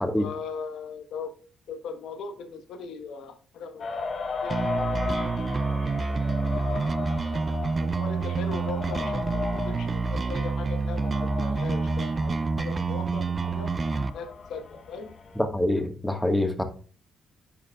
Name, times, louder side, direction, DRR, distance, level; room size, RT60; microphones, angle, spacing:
voice 1, 0.2-1.3 1.7-3.8 4.4-5.1 5.7-7.1 7.8-13.7 14.1-15.1, left 5 dB, 75° left, 7 dB, 1.1 m, -39 dB
sound 1, 3.8-15.4, left 4 dB, 55° left, 0.9 m, -36 dB
sound 2, 4.5-14.1, right 4 dB, 35° right, 0.4 m, -28 dB
voice 2, 15.4-16.6, left 1 dB, 5° left, 5 dB, 1.5 m, -25 dB
10.5 x 5.0 x 2.3 m, 0.39 s
cardioid pair, 90°, 0 cm